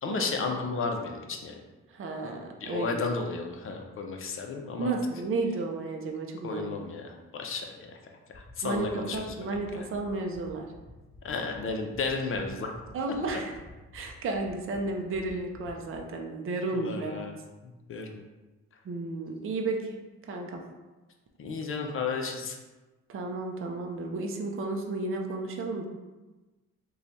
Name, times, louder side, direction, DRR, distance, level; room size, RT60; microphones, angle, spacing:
voice 1, 0.0-1.5 2.6-4.9 6.4-7.9 8.3-9.3 11.2-12.7 16.7-17.4 17.6-18.2 21.4-22.6, left 4 dB, 45° left, 3 dB, 0.6 m, -33 dB
voice 2, 1.9-3.0 4.8-6.7 8.6-10.7 12.9-13.5 13.9-17.2 18.8-20.0 20.3-20.6 23.1-25.9, right 3 dB, 45° right, 2 dB, 0.6 m, -33 dB
sound 1, 8.3-16.0, left 1 dB, 25° left, 1.0 m, -51 dB
3.2 x 2.3 x 3.9 m, 1.2 s
cardioid pair, 90°, 30 cm